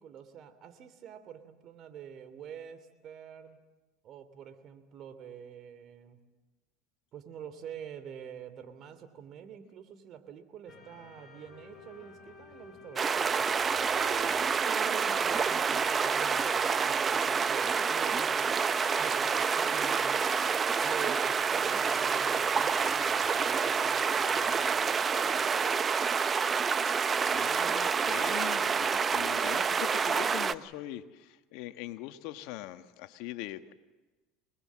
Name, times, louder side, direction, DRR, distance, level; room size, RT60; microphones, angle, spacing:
voice 1, 0.0-3.6 4.0-6.2 7.1-13.5 13.9-18.5 19.0-20.3 20.8-24.3, right 8 dB, 50° right, 10 dB, 3.0 m, -46 dB
sound 1, 10.7-25.8, left 6 dB, 30° left, 5.0 m, -51 dB
sound 2, 13.0-30.5, right 6 dB, 30° right, 0.8 m, -28 dB
voice 2, 27.1-33.7, left 14 dB, 70° left, 10 dB, 1.4 m, -42 dB
25.5 x 20.5 x 7.6 m, 1.2 s
supercardioid pair, 100°, 0 cm